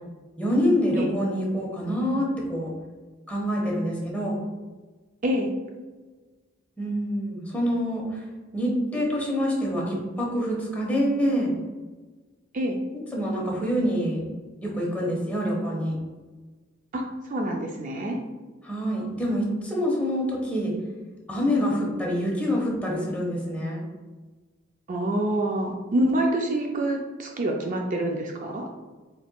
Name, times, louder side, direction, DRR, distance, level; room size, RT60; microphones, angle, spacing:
voice 1, 0.4-2.7 3.3-4.4 6.8-8.2 8.5-11.5 13.1-14.2 14.6-16.0 18.6-20.7 21.3-23.8, equal, 10° left, -3 dB, 1.0 m, -26 dB
voice 2, 16.9-18.2 24.9-28.7, right 1 dB, 45° right, 2 dB, 0.4 m, -26 dB
4.3 x 3.9 x 2.3 m, 1.3 s
head